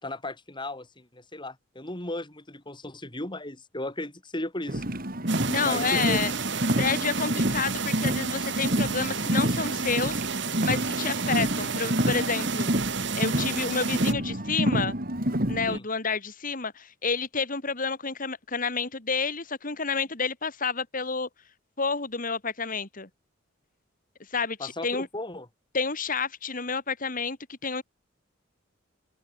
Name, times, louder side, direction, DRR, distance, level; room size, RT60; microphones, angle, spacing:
voice 1, 0.0-4.8 5.6-6.2 15.7-15.8 24.6-25.5, left 1 dB, 25° left, 4.3 m, -36 dB
Car, 4.7-15.8, right 1 dB, 45° right, 4.4 m, -28 dB
sound 1, 5.3-14.1, right 7 dB, 65° right, 2.7 m, -33 dB
voice 2, 5.5-6.3 6.8-10.2 10.6-12.7 13.2-15.0 15.5-21.3 21.8-23.1 24.3-25.1 25.7-27.8, left 5 dB, 45° left, 2.7 m, -29 dB
open air
head